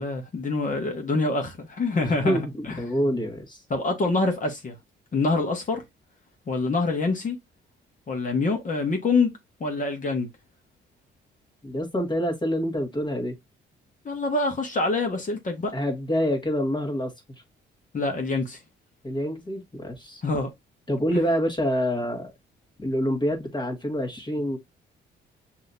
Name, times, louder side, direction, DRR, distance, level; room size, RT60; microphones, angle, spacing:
voice 1, 0.0-2.8 3.7-4.8 5.1-5.8 6.5-7.4 8.1-9.3 9.6-10.3 14.0-15.7 17.9-18.6 20.2-20.5 21.1-21.2, left 3 dB, 40° left, 1.3 m, -25 dB
voice 2, 2.2-3.6 11.6-13.3 15.7-17.1 19.0-20.2 20.9-22.3 22.8-24.6, equal, 25° left, 1.7 m, -26 dB
6.2 x 2.9 x 2.5 m
cardioid pair, 90°, 20 cm